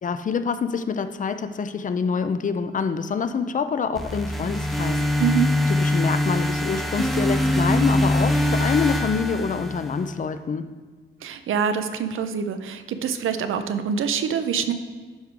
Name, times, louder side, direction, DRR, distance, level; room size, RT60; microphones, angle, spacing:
voice 1, 0.0-5.0 5.8-10.6, left 5 dB, 40° left, 10 dB, 0.4 m, -26 dB
sound 1, 4.0-10.1, left 1 dB, ahead, 0.7 m, -23 dB
voice 2, 5.2-5.5 11.2-14.7, right 7 dB, 85° right, 9 dB, 0.6 m, -25 dB
11.5 x 4.6 x 3.7 m, 1.4 s
cardioid pair, 100°, 20 cm